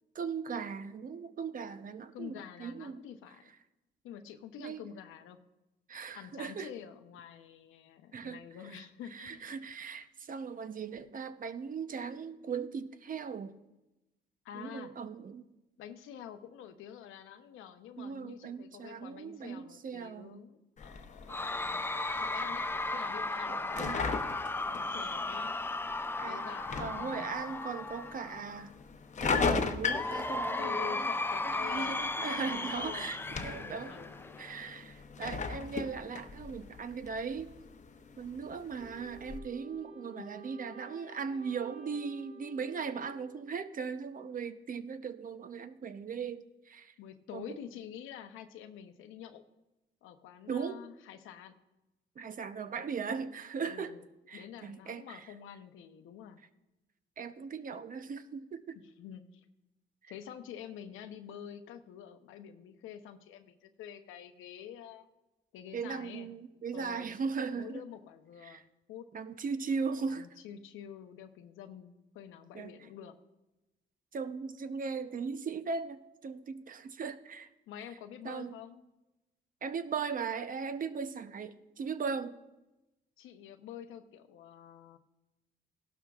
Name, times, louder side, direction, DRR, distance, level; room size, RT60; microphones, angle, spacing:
voice 1, 0.1-3.0 4.6-4.8 5.9-6.7 8.1-8.4 8.7-8.8 9.1-13.5 14.5-15.4 18.0-20.4 23.5-24.0 26.2-26.5 26.8-28.7 29.2-31.1 31.4-34.1 34.4-37.5 38.2-46.9 47.3-47.6 50.5-50.8 52.2-53.9 54.3-55.3 57.2-58.8 60.0-60.1 65.7-67.8 68.4-68.6 69.1-70.3 72.5-72.7 74.1-77.5 78.2-78.5 79.6-82.4, right 5 dB, 45° right, 11 dB, 0.7 m, -38 dB
voice 2, 2.1-3.5 4.0-5.4 6.2-9.6 14.4-14.9 15.8-21.9 22.2-24.2 24.7-25.5 26.3-27.4 30.6-32.1 32.4-33.1 33.4-34.4 40.2-40.3 47.0-49.4 50.0-51.6 53.6-54.0 54.3-56.4 59.0-59.4 60.1-65.1 65.5-66.3 66.7-67.1 67.5-68.6 68.9-69.1 70.1-73.2 77.7-78.8 83.2-85.0, left 9 dB, 90° left, 8 dB, 0.8 m, -48 dB
sound 1, 20.8-39.4, left 5 dB, 35° left, 0.8 m, -39 dB
Cheering / Crowd, 21.3-28.6 29.9-34.6, left 2 dB, 10° left, 0.4 m, -35 dB
Wind instrument woodwind instrument, 38.8-43.8, right 1 dB, 65° right, 3.0 m, -52 dB
16.5 x 12.0 x 2.4 m, 0.99 s
cardioid pair, 90°, 20 cm